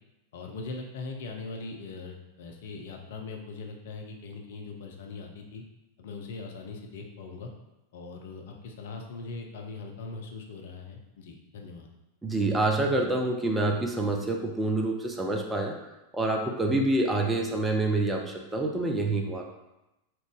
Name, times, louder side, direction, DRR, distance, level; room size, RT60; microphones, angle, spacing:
voice 1, 0.3-5.6 6.0-7.5 7.9-11.9, left 3 dB, 55° left, 2 dB, 0.6 m, -40 dB
voice 2, 12.2-15.7 16.1-19.5, right 2 dB, 10° right, 1 dB, 0.5 m, -27 dB
3.8 x 3.0 x 3.6 m, 0.95 s
figure-of-eight pair, 90°, 0 cm